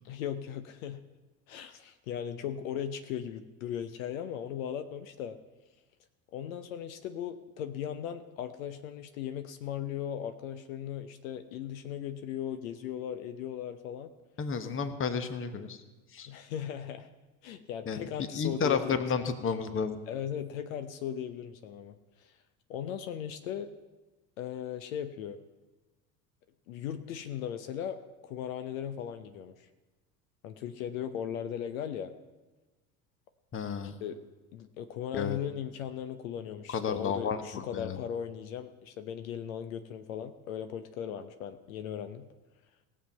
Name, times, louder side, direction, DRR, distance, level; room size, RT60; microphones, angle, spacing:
voice 1, 0.0-1.0 1.5-5.4 6.3-14.1 16.3-17.1 17.4-19.0 20.1-22.3 22.7-23.7 24.4-25.4 26.7-29.7 30.4-32.1 34.0-34.2 34.5-42.3, left 9 dB, 70° left, 9 dB, 0.8 m, -38 dB
voice 2, 14.4-15.8 16.1-16.3 17.8-20.0 33.5-34.0 35.1-35.4 36.7-38.0, left 6 dB, 30° left, 10 dB, 1.2 m, -32 dB
17.5 x 7.6 x 5.5 m, 1.2 s
hypercardioid pair, 75°, 42 cm